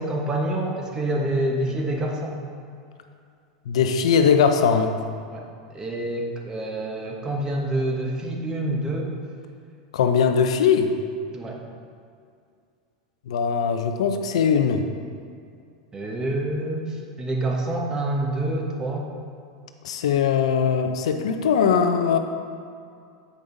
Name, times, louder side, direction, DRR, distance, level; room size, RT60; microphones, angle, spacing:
voice 1, 0.0-2.4 5.3-5.4 5.7-9.1 11.3-11.6 15.9-19.1, right 1 dB, 20° right, 0 dB, 1.3 m, -27 dB
voice 2, 3.7-5.0 9.9-10.9 13.3-14.8 19.8-22.2, left 6 dB, 80° left, 7 dB, 0.6 m, -20 dB
8.5 x 5.1 x 4.0 m, 2.3 s
hypercardioid pair, 105°, 3 cm